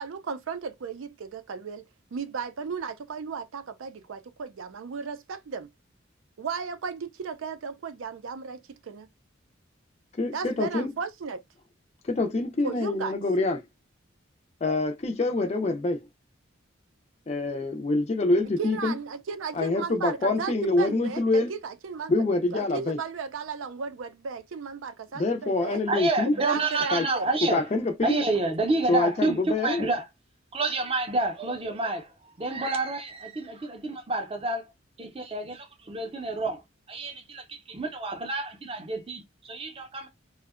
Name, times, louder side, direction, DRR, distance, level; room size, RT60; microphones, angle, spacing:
voice 1, 0.0-5.7 6.4-9.1 10.3-11.4 12.6-13.2 18.6-22.1 22.5-25.8 26.3-27.3 28.2-28.3, right 5 dB, 80° right, 0.4 m, -35 dB
voice 2, 10.2-10.9 12.0-13.6 14.6-16.0 17.3-18.9 19.6-21.5 22.1-23.0 25.1-26.3 26.9-27.1 27.5-28.2 28.9-29.9, left 2 dB, 30° left, 0.4 m, -26 dB
voice 3, 25.9-27.7 28.0-30.0 30.5-34.7 35.0-36.6 36.9-40.1, right 2 dB, 30° right, 0.5 m, -29 dB
2.6 x 2.1 x 2.3 m
head